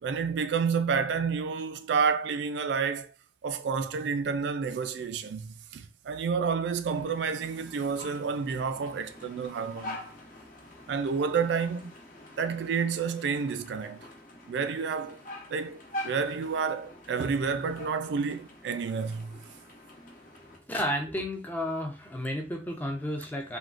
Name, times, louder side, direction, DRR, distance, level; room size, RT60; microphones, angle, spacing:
voice 1, 0.0-3.1 3.4-10.0 10.9-11.9 12.4-14.1 14.5-15.2 15.5-19.4, right 5 dB, 65° right, 0.3 m, -30 dB
sound 1, 6.9-20.6, left 1 dB, 50° left, 0.8 m, -45 dB
voice 2, 20.7-23.6, equal, 10° left, 0.5 m, -32 dB
3.5 x 2.3 x 2.5 m
head